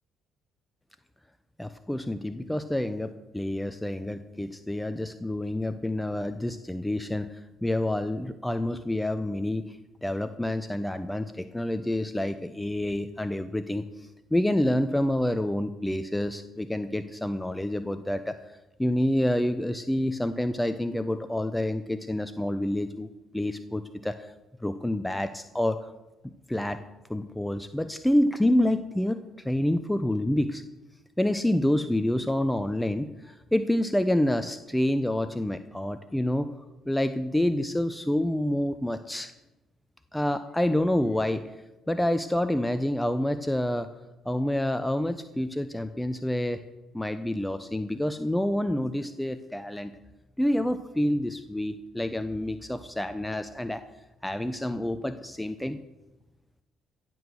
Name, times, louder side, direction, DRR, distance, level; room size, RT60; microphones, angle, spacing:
voice 1, 1.6-18.4 18.8-24.3 24.6-25.9 26.5-26.8 27.1-29.2 29.4-30.6 31.2-36.5 36.9-39.3 40.1-41.4 41.9-43.9 44.2-46.6 46.9-49.9 50.4-53.9 54.2-55.8, left 1 dB, 5° left, 11 dB, 0.9 m, -28 dB
15.5 x 8.3 x 6.6 m, 1.0 s
hypercardioid pair, 50°, 0 cm